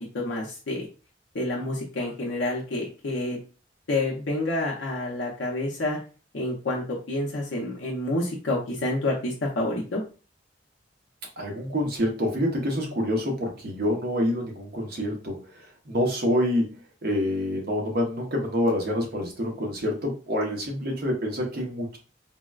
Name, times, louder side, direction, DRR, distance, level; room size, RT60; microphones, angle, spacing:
voice 1, 0.1-0.9 1.3-3.4 3.9-6.0 6.3-10.0, left 2 dB, 70° left, -3 dB, 0.7 m, -28 dB
voice 2, 11.4-15.4 15.9-16.7 17.0-22.0, equal, 55° right, 0 dB, 0.9 m, -27 dB
3.9 x 2.1 x 2.3 m, 0.35 s
head